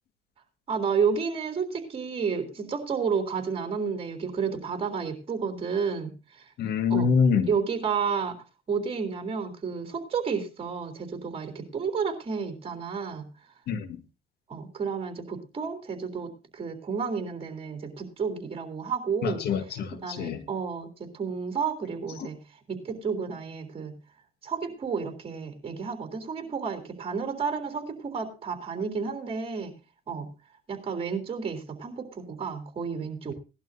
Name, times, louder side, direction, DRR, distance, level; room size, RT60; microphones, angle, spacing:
voice 1, 0.7-6.5 6.9-7.1 7.5-8.4 8.7-13.3 14.5-19.5 19.9-22.4 22.7-24.0 24.4-29.7 30.1-30.3 30.7-33.3, right 6 dB, 35° right, 3.5 m, -31 dB
voice 2, 6.6-7.5 13.7-13.9 19.2-20.4, left 6 dB, 70° left, 1.8 m, -25 dB
18.5 x 11.5 x 2.7 m
cardioid pair, 110°, 17 cm